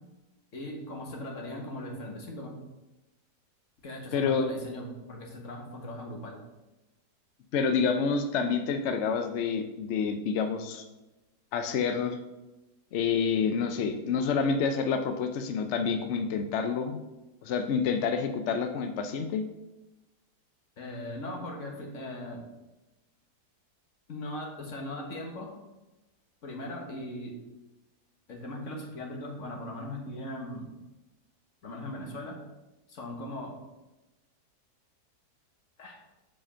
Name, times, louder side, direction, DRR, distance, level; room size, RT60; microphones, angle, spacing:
voice 1, 0.5-2.5 3.8-6.4 20.8-22.4 24.1-25.5 26.4-27.4 28.3-30.7 31.6-32.4 32.9-33.5 35.8-36.0, left 1 dB, 50° left, 0 dB, 1.5 m, -39 dB
voice 2, 4.1-4.5 7.5-10.8 11.5-12.2 12.9-17.0 17.4-19.4, left 5 dB, 70° left, 7 dB, 0.6 m, -28 dB
5.1 x 5.0 x 5.5 m, 1.0 s
omnidirectional pair, 1.8 m